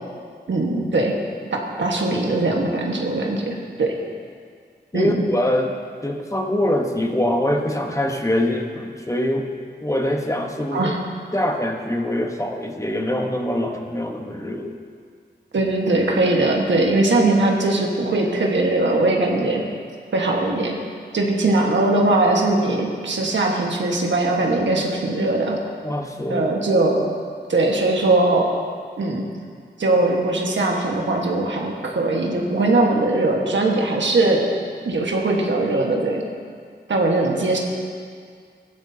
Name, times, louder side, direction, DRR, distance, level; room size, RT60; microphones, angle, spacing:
voice 1, 0.5-1.2 1.5-4.0 4.9-5.2 10.7-11.0 15.5-19.6 20.1-20.8 21.1-25.6 26.3-27.0 27.5-28.5 29.0-29.2 29.8-34.4 34.8-36.2 36.9-37.6, right 2 dB, 85° right, 0 dB, 1.5 m, -20 dB
voice 2, 4.9-5.8 6.0-9.5 9.8-10.9 11.3-14.8 25.8-26.5, left 1 dB, 15° left, 2 dB, 1.1 m, -23 dB
15.0 x 11.5 x 2.8 m, 2.1 s
cardioid pair, 55°, 18 cm